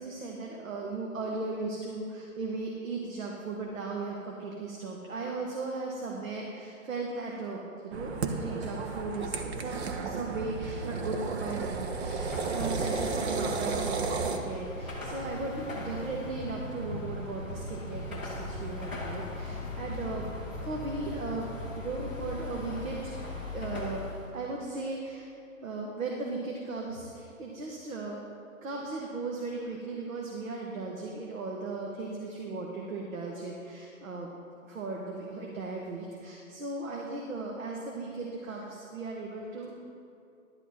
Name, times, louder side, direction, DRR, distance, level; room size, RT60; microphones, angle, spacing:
voice 1, 0.0-20.2 20.6-21.5 21.8-24.0 24.3-25.3 25.6-28.2 28.6-34.3 34.6-39.8, right 3 dB, 70° right, -1 dB, 1.5 m, -37 dB
sound 1, 7.9-14.4, right 4 dB, 50° right, 0.9 m, -33 dB
Car passing by / Traffic noise roadway noise / Engine, 11.7-24.3, left 2 dB, 10° right, 0.4 m, -39 dB
11.5 x 8.2 x 4.4 m, 2.5 s
hypercardioid pair, 145°, 42 cm